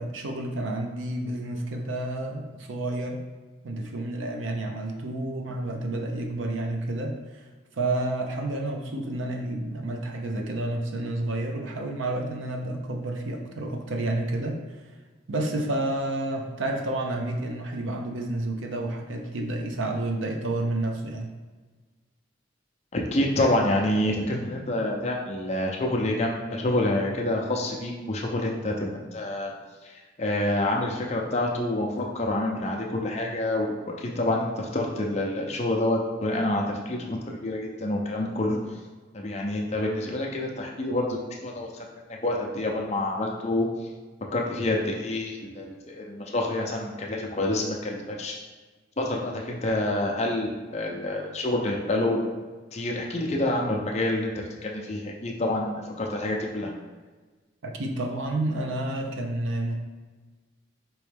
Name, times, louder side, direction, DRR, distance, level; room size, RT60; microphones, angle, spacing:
voice 1, 0.0-3.2 3.6-7.4 7.7-14.8 15.3-21.3 57.6-59.7, right 2 dB, 80° right, 3 dB, 0.6 m, -30 dB
voice 2, 22.9-29.5 29.8-38.8 39.1-43.9 44.3-48.4 49.0-52.3 52.7-56.7, left 1 dB, 35° left, 0 dB, 0.6 m, -27 dB
4.6 x 3.1 x 3.3 m, 1.3 s
head